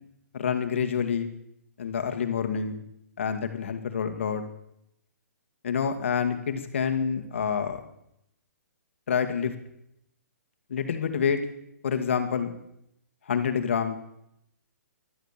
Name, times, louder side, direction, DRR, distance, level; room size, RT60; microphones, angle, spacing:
voice 1, 0.3-1.3 1.8-2.8 3.2-4.4 5.6-7.8 9.1-9.5 10.7-11.4 11.8-12.5 13.3-14.0, left 7 dB, 45° left, 7 dB, 1.8 m, -27 dB
16.5 x 11.5 x 7.3 m, 0.78 s
hypercardioid pair, 180°, 9 cm